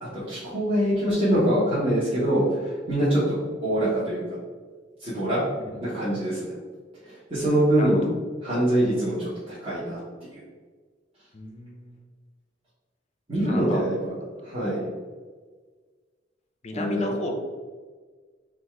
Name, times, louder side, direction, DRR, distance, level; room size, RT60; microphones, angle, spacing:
voice 1, 0.0-3.2 3.6-4.4 5.0-5.4 5.8-6.5 7.0-8.0 8.4-10.0 13.3-14.1 14.4-14.8 16.7-17.1, right 1 dB, 30° right, -12 dB, 1.4 m, -24 dB
voice 2, 7.8-8.1 11.3-12.0 13.4-13.8 16.6-17.3, left 1 dB, 35° left, 2 dB, 0.6 m, -34 dB
4.0 x 2.5 x 4.6 m, 1.5 s
head